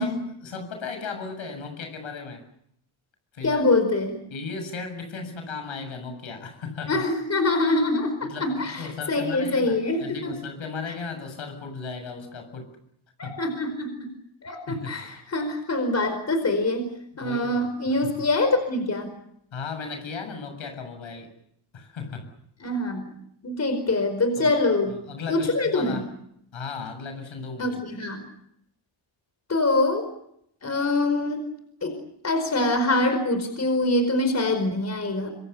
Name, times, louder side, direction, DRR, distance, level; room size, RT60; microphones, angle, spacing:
voice 1, 0.0-2.4 3.3-3.6 4.3-7.0 8.2-12.7 13.2-13.4 14.7-15.0 17.1-18.1 19.5-21.3 21.7-22.3 24.4-24.5 25.1-26.0 26.5-27.8, left 4 dB, 75° left, 7 dB, 7.5 m, -36 dB
voice 2, 3.4-4.2 6.9-10.4 13.2-14.1 14.4-16.9 17.2-19.1 22.6-23.0 23.4-25.0 25.3-26.0 27.6-28.2 29.5-30.1 30.6-31.4 31.8-32.0 32.2-35.3, left 2 dB, 35° left, 7 dB, 4.9 m, -24 dB
26.0 x 25.5 x 7.0 m, 0.72 s
wide cardioid pair, 160°, 48 cm